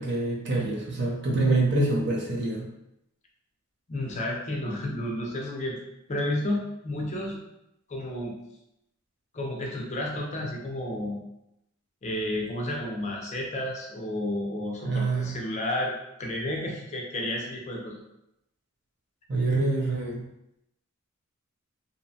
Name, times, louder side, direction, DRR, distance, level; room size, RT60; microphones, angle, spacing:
voice 1, 0.0-2.6 14.8-15.3 19.3-20.2, right 2 dB, 50° right, -1 dB, 0.5 m, -26 dB
voice 2, 3.9-5.8 6.1-7.4 7.9-8.3 9.3-11.2 12.0-15.9 16.2-18.0, left 1 dB, 30° left, -1 dB, 0.4 m, -31 dB
2.7 x 2.1 x 2.7 m, 0.83 s
head